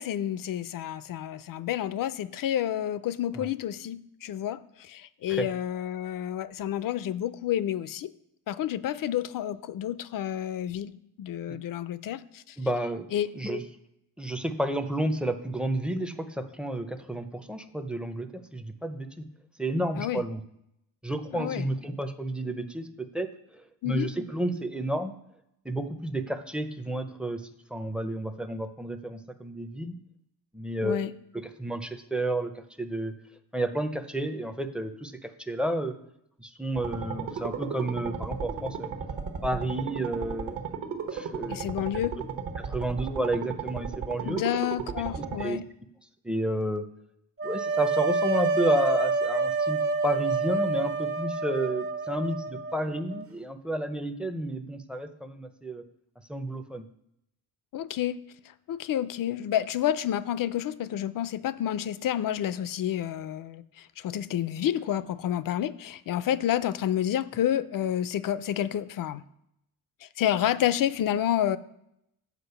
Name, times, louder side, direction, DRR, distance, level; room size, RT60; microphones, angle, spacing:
voice 1, 0.0-8.1 8.5-12.6 13.1-13.3 20.0-20.2 21.3-21.7 23.8-24.1 30.8-31.1 41.5-42.1 44.2-45.6 57.7-58.2 58.7-69.2 70.0-71.6, left 11 dB, 55° left, 15 dB, 0.5 m, -29 dB
voice 2, 12.6-13.1 13.3-13.6 14.2-19.2 19.6-20.4 21.0-23.3 23.8-25.1 25.6-27.4 27.7-29.9 30.5-31.0 31.3-33.1 33.5-35.9 36.4-38.9 39.4-40.6 41.1-41.7 42.6-44.4 45.2-45.6 46.2-46.8 47.4-55.8 56.3-56.8, right 1 dB, ahead, 9 dB, 0.5 m, -31 dB
sound 1, 36.8-45.4, right 6 dB, 55° right, 1.1 m, -35 dB
sound 2, 47.4-53.3, right 4 dB, 35° right, 0.7 m, -28 dB
8.1 x 5.0 x 6.8 m, 0.79 s
cardioid pair, 130°, 40 cm